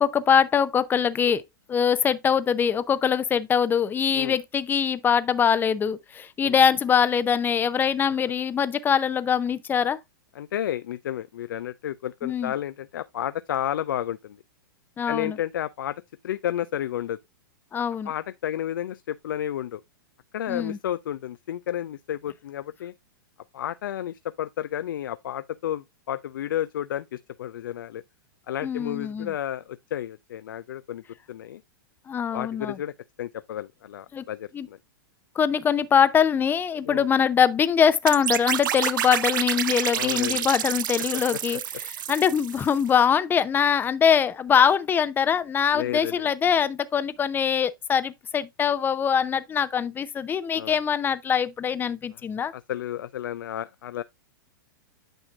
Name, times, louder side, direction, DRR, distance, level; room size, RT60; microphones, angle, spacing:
voice 1, 0.0-1.4 1.7-10.0 12.2-12.5 15.0-15.4 17.7-18.1 20.5-20.8 28.6-29.3 32.1-32.8 34.1-34.2 34.5-34.7 35.4-41.6 41.9-52.5, left 7 dB, 15° left, 0.6 m, -23 dB
voice 2, 10.4-14.4 15.1-16.0 16.2-17.2 18.0-19.8 20.3-22.9 23.5-28.0 28.5-31.0 31.3-31.6 32.3-32.9 33.2-34.8 36.9-37.1 39.9-40.5 45.7-46.3 50.5-50.8 52.4-54.0, left 11 dB, 70° left, 0.4 m, -31 dB
sound 1, 38.1-42.9, right 11 dB, 65° right, 0.5 m, -29 dB
9.0 x 6.3 x 2.4 m
hypercardioid pair, 110°, 11 cm